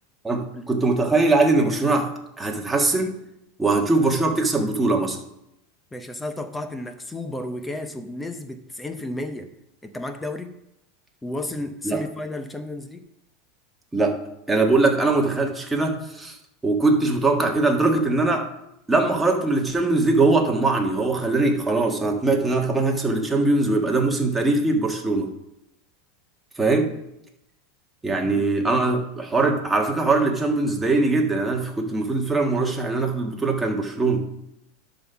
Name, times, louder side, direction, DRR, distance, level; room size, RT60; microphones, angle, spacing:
voice 1, 0.2-2.1 2.4-3.1 3.6-5.2 11.8-12.0 13.9-14.2 14.5-16.4 16.6-18.5 18.9-25.3 26.6-26.9 28.0-34.3, right 3 dB, 10° right, 1 dB, 1.5 m, -21 dB
voice 2, 5.9-9.5 9.8-10.6 11.2-13.1 28.2-28.7, left 1 dB, 10° left, 8 dB, 0.7 m, -33 dB
11.5 x 3.9 x 5.6 m, 0.82 s
supercardioid pair, 120°, 0 cm